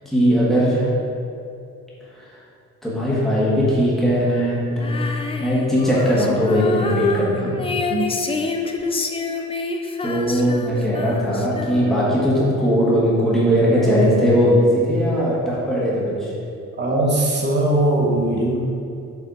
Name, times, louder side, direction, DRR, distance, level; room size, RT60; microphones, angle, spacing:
voice 1, 0.0-0.8 2.8-5.0 5.4-7.5 10.0-16.3, equal, ahead, -8 dB, 1.5 m, -19 dB
Female singing, 4.8-12.1, left 4 dB, 20° left, 0.3 m, -28 dB
voice 2, 16.8-18.6, right 1 dB, 35° right, -2 dB, 1.1 m, -20 dB
7.0 x 4.2 x 4.0 m, 2.6 s
cardioid pair, 150°, 31 cm